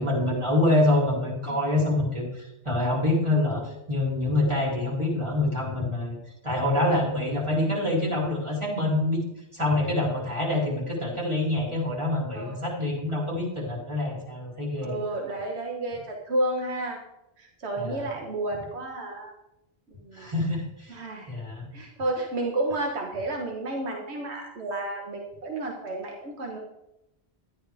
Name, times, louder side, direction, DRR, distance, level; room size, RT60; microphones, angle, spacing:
voice 1, 0.0-6.2 6.4-9.2 9.5-15.0 17.8-18.1 20.1-21.0 21.3-21.7, left 2 dB, 25° right, -5 dB, 3.6 m, -26 dB
voice 2, 14.8-17.0 17.4-19.3 19.9-20.3 20.9-21.3 21.7-26.6, right 2 dB, 75° right, 1 dB, 1.6 m, -31 dB
13.5 x 11.0 x 3.5 m, 0.87 s
omnidirectional pair, 1.1 m